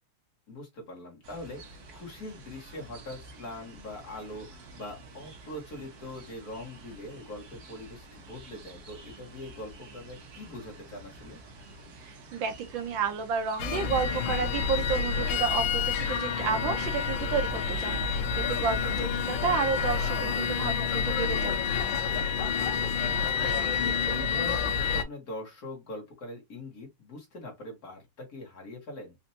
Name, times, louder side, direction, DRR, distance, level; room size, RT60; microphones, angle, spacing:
voice 1, 0.5-11.4 18.8-19.2 22.4-23.1 23.4-29.2, left 1 dB, 50° left, 1.7 m, -42 dB
sound 1, 1.2-16.3, right 2 dB, 55° right, 1.4 m, -50 dB
voice 2, 12.0-21.5, right 6 dB, 75° right, 1.3 m, -31 dB
sound 2, 13.6-25.0, left 6 dB, 70° left, 1.3 m, -28 dB
4.3 x 2.6 x 2.7 m
omnidirectional pair, 2.3 m